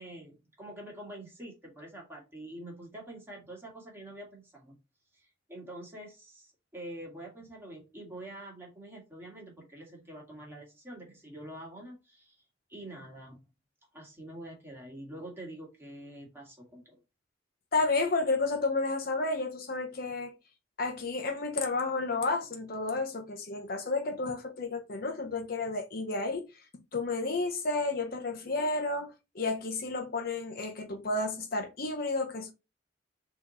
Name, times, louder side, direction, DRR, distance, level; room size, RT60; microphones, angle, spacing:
voice 1, 0.0-4.8 5.1-12.4 12.7-13.5 13.9-17.0, right 1 dB, 10° right, 1.7 m, -46 dB
voice 2, 17.7-20.3 20.8-26.5 26.9-32.5, left 3 dB, 50° left, 0.7 m, -31 dB
4.1 x 3.0 x 4.0 m
head